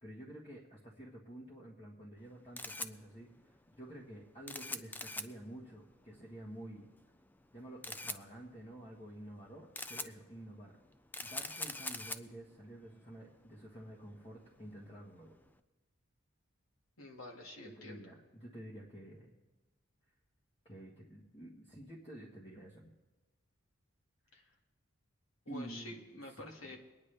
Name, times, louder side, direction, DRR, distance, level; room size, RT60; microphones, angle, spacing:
voice 1, 0.0-6.9 7.5-10.8 11.2-15.3 17.8-19.4 20.6-22.9 25.5-26.0 26.7-26.8, right 1 dB, 25° left, -3 dB, 1.4 m, -50 dB
Camera, 2.2-15.5, left 2 dB, 10° left, 0.3 m, -46 dB
voice 2, 17.0-18.1 24.3-24.5 25.5-26.8, left 1 dB, 75° left, 1 dB, 2.0 m, -49 dB
23.0 x 9.7 x 3.4 m, 1.2 s
head